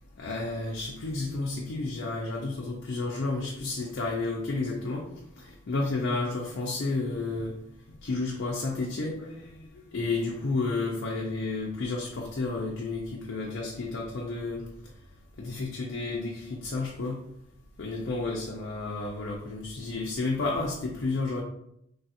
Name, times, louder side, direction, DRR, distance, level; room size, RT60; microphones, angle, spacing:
voice 1, 0.2-5.1 5.4-7.5 8.0-14.6 15.4-17.2 17.8-21.4, left 3 dB, 60° left, -2 dB, 0.4 m, -31 dB
3.2 x 2.3 x 2.7 m, 0.76 s
head